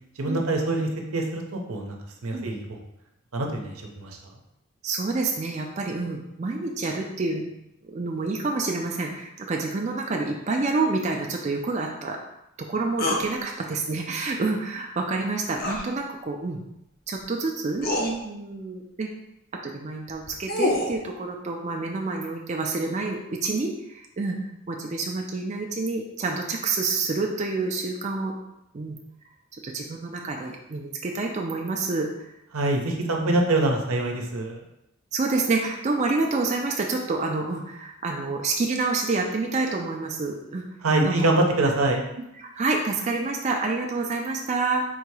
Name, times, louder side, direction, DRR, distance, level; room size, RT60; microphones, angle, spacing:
voice 1, 0.2-2.8 3.3-4.2 32.5-34.6 40.8-42.0, right 2 dB, 90° right, 2 dB, 0.8 m, -25 dB
voice 2, 4.8-7.4 7.8-12.2 12.6-16.6 17.1-19.1 19.6-24.4 24.7-28.3 28.7-29.0 29.5-32.3 32.9-33.4 35.1-40.6 41.0-41.3 42.4-44.8, right 3 dB, 35° right, 1 dB, 0.4 m, -28 dB
sound 1, 13.0-13.3 15.6-15.8 17.2-17.3 17.8-18.1 20.1-21.0, left 1 dB, 45° left, 0.6 m, -26 dB
3.9 x 2.8 x 4.7 m, 0.86 s
head